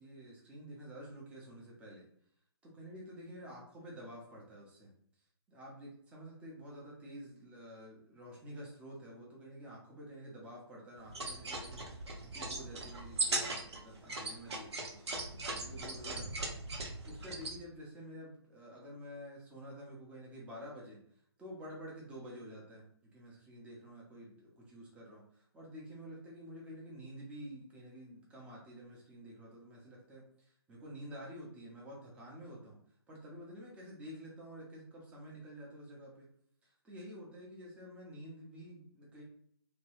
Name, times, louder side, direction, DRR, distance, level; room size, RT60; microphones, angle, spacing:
voice 1, 0.0-2.1 2.6-4.9 5.5-21.0 21.4-32.8 33.1-36.3 36.6-39.2, equal, 10° right, -4 dB, 0.6 m, -50 dB
sound 1, 11.1-17.6, right 2 dB, 75° right, 0.8 m, -39 dB
2.9 x 2.2 x 3.0 m, 0.65 s
hypercardioid pair, 150°, 14 cm